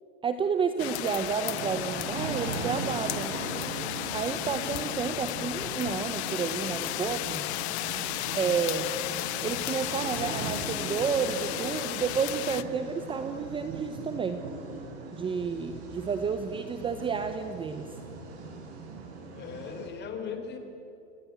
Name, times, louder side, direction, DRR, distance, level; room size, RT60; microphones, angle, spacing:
voice 1, 0.2-3.4 4.1-7.5 8.3-8.9 9.4-14.4 15.1-18.0, right 6 dB, 15° right, 9 dB, 0.8 m, -31 dB
sound 1, 0.8-12.6, left 18 dB, 55° left, 1.0 m, -34 dB
sound 2, 1.4-19.9, right 4 dB, 55° right, 7.3 m, -39 dB
voice 2, 19.3-20.6, left 6 dB, 25° left, 5 dB, 3.9 m, -38 dB
28.0 x 19.0 x 8.2 m, 2.8 s
supercardioid pair, 145°, 38 cm